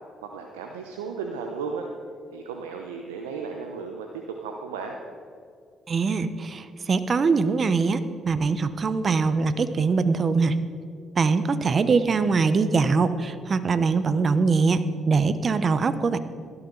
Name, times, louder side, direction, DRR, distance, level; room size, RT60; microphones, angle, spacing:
voice 1, 0.2-1.9 2.3-5.0, right 5 dB, 90° right, 3 dB, 0.8 m, -34 dB
voice 2, 5.9-10.6 11.2-16.2, right 4 dB, 45° right, 12 dB, 0.9 m, -22 dB
17.0 x 12.5 x 4.0 m, 2.4 s
hypercardioid pair, 50°, 0 cm